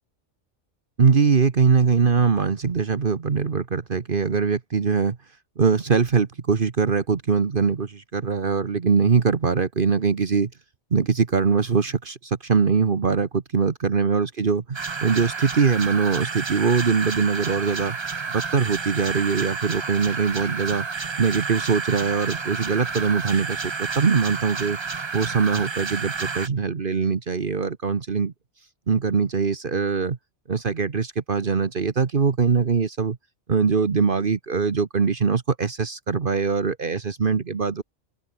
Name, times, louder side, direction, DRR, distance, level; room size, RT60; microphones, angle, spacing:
voice 1, 1.0-5.2 5.6-10.5 10.9-18.0 18.3-20.9 21.2-24.8 25.1-28.3 28.9-30.2 30.5-33.2 33.5-37.8, right 5 dB, 50° right, 1.3 m, -22 dB
sound 1, 14.7-26.5, right 4 dB, 30° right, 0.7 m, -30 dB
open air
omnidirectional pair, 1.2 m